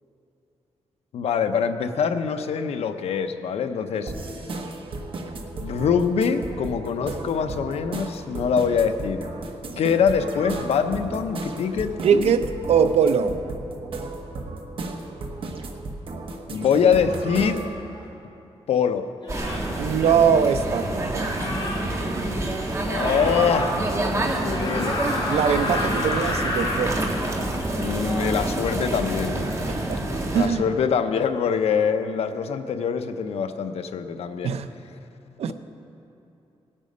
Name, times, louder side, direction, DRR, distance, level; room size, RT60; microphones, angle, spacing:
voice 1, 1.1-4.1 5.6-9.3 9.8-12.3 16.5-17.6 18.7-19.1 22.9-23.7 24.4-25.0 27.7-29.5 30.3-34.5, left 6 dB, 80° left, 0.7 m, -24 dB
sound 1, 4.1-17.8, right 2 dB, 55° right, 1.1 m, -34 dB
voice 2, 12.0-13.4 19.8-21.4 25.3-27.0 29.7-30.0 30.3-30.6 34.4-34.7 35.4-35.5, right 7 dB, 80° right, 0.6 m, -21 dB
sound 2, 17.9-18.0 19.2-19.7 21.1-21.8 23.0-23.7 24.5-26.9, left 2 dB, 50° left, 3.7 m, -30 dB
sound 3, 19.3-30.5, right 1 dB, 30° right, 1.5 m, -27 dB
18.0 x 8.9 x 5.4 m
wide cardioid pair, 140°, 10 cm